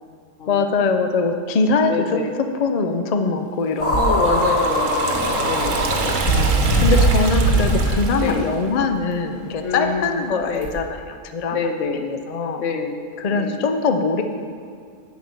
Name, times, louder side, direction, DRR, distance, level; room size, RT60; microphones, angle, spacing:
voice 1, 0.5-2.2 2.6-4.5 5.7-6.4 6.8-11.6 12.0-12.6 13.2-14.2, left 4 dB, 45° left, 6 dB, 0.5 m, -22 dB
voice 2, 1.8-2.3 3.9-5.9 6.3-6.8 8.2-8.5 9.6-10.7 11.5-12.1 12.6-13.0 13.3-13.6, left 5 dB, 70° left, 5 dB, 1.2 m, -27 dB
sound 1, 3.8-8.3 9.1-9.2 10.6-10.7, right 1 dB, 25° left, 1.4 m, -20 dB
Liquid, 3.9-8.6, right 4 dB, 85° right, 1.3 m, -28 dB
9.9 x 5.1 x 7.0 m, 2.3 s
omnidirectional pair, 1.3 m